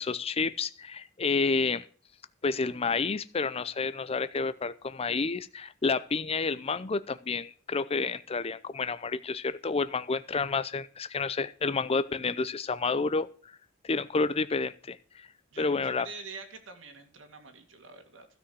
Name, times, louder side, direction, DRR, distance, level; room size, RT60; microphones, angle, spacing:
voice 1, 0.0-1.8 2.4-13.3 13.8-15.3 15.6-16.1, left 4 dB, 30° left, 14 dB, 0.5 m, -30 dB
voice 2, 15.5-18.3, right 4 dB, 75° right, 4 dB, 2.3 m, -45 dB
13.0 x 6.2 x 7.8 m, 0.40 s
head